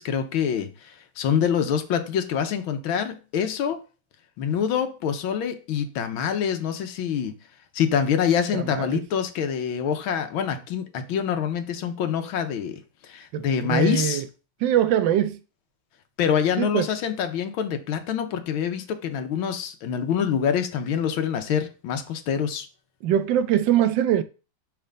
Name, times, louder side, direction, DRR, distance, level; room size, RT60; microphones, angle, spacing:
voice 1, 0.0-3.8 4.4-7.4 7.7-14.2 16.2-22.7, left 8 dB, 90° left, 1.7 m, -26 dB
voice 2, 8.5-9.0 13.3-14.3 14.6-15.4 16.6-16.8 23.0-24.2, right 10 dB, 75° right, 1.2 m, -22 dB
5.8 x 4.3 x 5.0 m
omnidirectional pair, 2.2 m